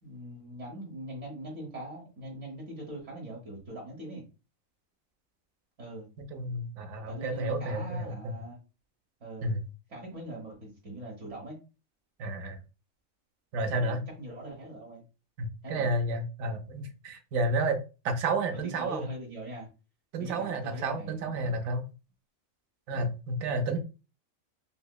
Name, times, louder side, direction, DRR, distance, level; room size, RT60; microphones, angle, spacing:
voice 1, 0.0-4.2 5.8-6.1 7.1-8.6 9.2-9.6 9.9-11.6 13.7-15.0 15.6-15.9 18.6-19.7 20.2-21.5, right 1 dB, 65° right, -2 dB, 1.4 m, -42 dB
voice 2, 6.3-8.3 9.4-9.6 12.2-12.6 13.5-14.0 15.4-17.8 18.0-19.1 20.1-21.8 22.9-23.8, right 2 dB, 85° right, 5 dB, 1.1 m, -31 dB
5.5 x 2.1 x 2.2 m, 0.31 s
omnidirectional pair, 1.4 m